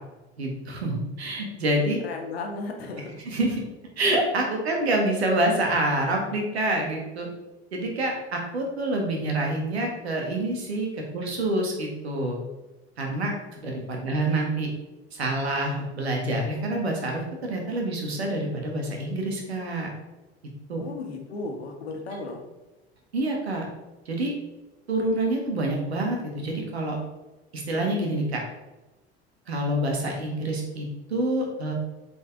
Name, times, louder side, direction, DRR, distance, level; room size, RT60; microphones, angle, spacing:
voice 1, 0.4-2.0 3.3-3.6 4.0-7.3 7.7-12.4 13.0-14.7 15.1-19.9 20.7-20.8 23.1-23.7 24.0-24.3 24.9-27.0 27.5-28.4 29.5-31.7, right 1 dB, 75° right, 1 dB, 1.6 m, -27 dB
voice 2, 2.0-3.2 20.7-22.4, left 3 dB, 70° left, 2 dB, 1.3 m, -35 dB
8.1 x 4.7 x 3.6 m, 1.1 s
figure-of-eight pair, 65°, 32 cm